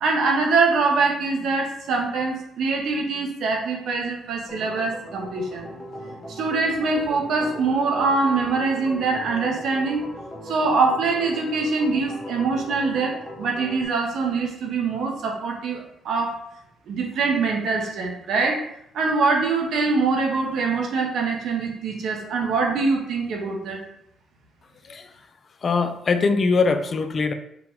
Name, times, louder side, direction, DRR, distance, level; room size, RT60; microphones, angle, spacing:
voice 1, 0.0-5.7 6.3-10.0 10.4-16.4 16.9-18.6 18.9-23.8, right 4 dB, 75° right, 1 dB, 0.9 m, -23 dB
Organ, 4.5-13.8, equal, 20° left, 1.2 m, -38 dB
voice 2, 25.6-27.3, left 4 dB, 45° left, 8 dB, 0.4 m, -22 dB
4.6 x 2.2 x 3.7 m, 0.75 s
cardioid pair, 90°, 0 cm